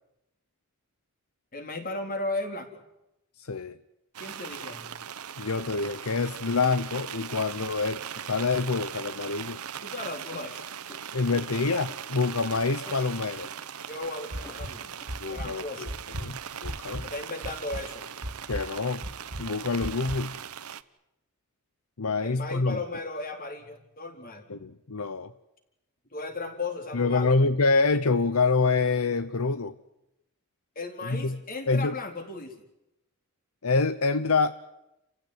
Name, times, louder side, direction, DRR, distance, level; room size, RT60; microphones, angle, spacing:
voice 1, 1.5-2.8 4.2-4.9 9.8-10.6 13.9-15.0 15.3-15.9 17.0-18.0 22.2-24.4 26.1-27.4 30.8-32.6, left 2 dB, 40° left, 5 dB, 4.1 m, -36 dB
voice 2, 3.4-3.8 5.4-8.0 8.3-9.6 11.1-13.5 15.2-15.9 16.2-17.0 18.5-19.0 19.4-20.4 22.0-22.8 24.5-25.3 26.9-29.7 31.0-31.4 31.7-31.9 33.6-34.6, left 4 dB, 75° left, 13 dB, 0.9 m, -26 dB
sound 1, 4.1-20.8, right 8 dB, 80° right, 1.0 m, -40 dB
sound 2, 10.3-12.1 12.5-13.1 13.4-13.7 14.1-14.2 14.4-14.6 15.0-15.1, left 2 dB, 15° left, 3.1 m, -49 dB
sound 3, 14.3-14.7 15.1-15.5 15.8-17.1 17.4-17.8 18.2-18.6 19.0-19.4 19.8-20.2, equal, 65° right, 2.6 m, -35 dB
30.0 x 15.5 x 9.7 m, 0.89 s
head